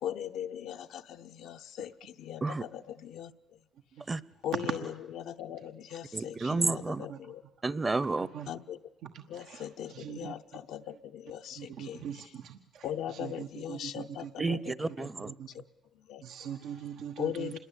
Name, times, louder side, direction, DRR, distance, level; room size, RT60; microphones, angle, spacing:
voice 1, 0.0-3.3 4.4-4.8 5.2-7.4 8.5-8.8 9.3-12.0 12.8-14.6 15.5-15.6 16.1-16.2 17.2-17.6, left 10 dB, 85° left, 0.8 m, -39 dB
voice 2, 6.1-7.1 7.6-8.3 14.4-15.3, right 3 dB, 25° right, 0.8 m, -30 dB
voice 3, 8.2-8.5 9.0-10.3 11.6-14.3 15.3-15.6 16.2-17.6, right 8 dB, 85° right, 1.2 m, -42 dB
26.5 x 21.5 x 8.4 m
cardioid pair, 90°, 0 cm